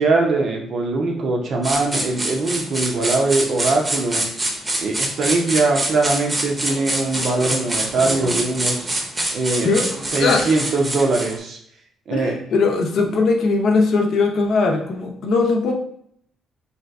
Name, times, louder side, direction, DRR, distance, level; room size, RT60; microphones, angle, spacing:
voice 1, 0.0-4.2 4.8-8.9 9.3-9.7 10.1-11.6 12.1-12.3, right 3 dB, 65° right, 2 dB, 0.7 m, -21 dB
sound 1, 1.6-11.4, right 1 dB, 20° right, 0.7 m, -25 dB
voice 2, 12.1-15.7, left 3 dB, 70° left, 1 dB, 0.6 m, -19 dB
2.7 x 2.4 x 3.5 m, 0.66 s
cardioid pair, 90°, 0 cm